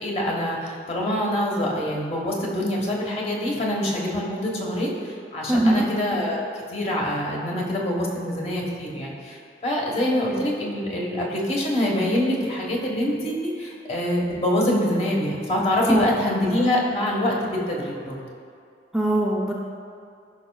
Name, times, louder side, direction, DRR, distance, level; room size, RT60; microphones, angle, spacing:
voice 1, 0.0-18.2, left 1 dB, 40° left, -3 dB, 1.3 m, -25 dB
voice 2, 5.5-5.9 15.8-16.1 18.9-19.5, right 1 dB, 5° right, -3 dB, 0.5 m, -21 dB
13.5 x 5.7 x 2.3 m, 2.4 s
head